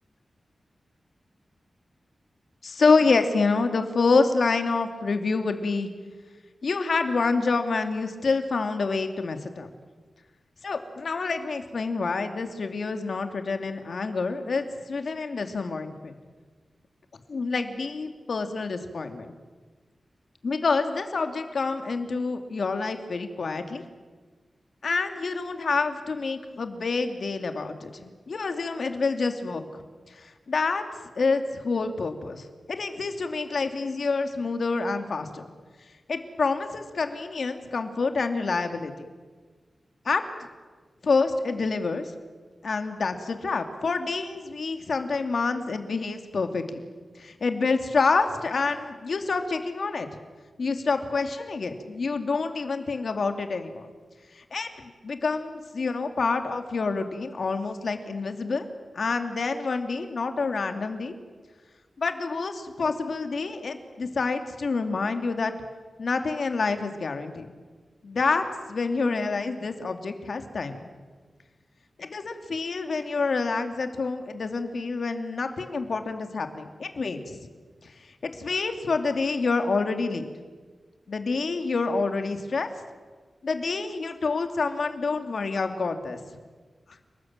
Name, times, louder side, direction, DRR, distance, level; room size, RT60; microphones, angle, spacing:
voice 1, 2.6-5.9 6.6-9.7 10.6-16.2 17.3-19.3 20.4-23.8 24.8-29.8 30.1-30.8 31.2-35.5 36.1-39.1 40.0-40.2 41.0-42.1 42.6-46.8 47.2-50.1 50.6-53.9 54.4-58.7 58.9-61.1 62.0-65.5 66.0-67.5 68.0-70.8 72.0-77.5 78.2-80.3 81.1-82.7 83.4-86.2, left 4 dB, 60° left, 6 dB, 2.6 m, -27 dB
29.5 x 19.5 x 8.9 m, 1.4 s
wide cardioid pair, 140°, 0 cm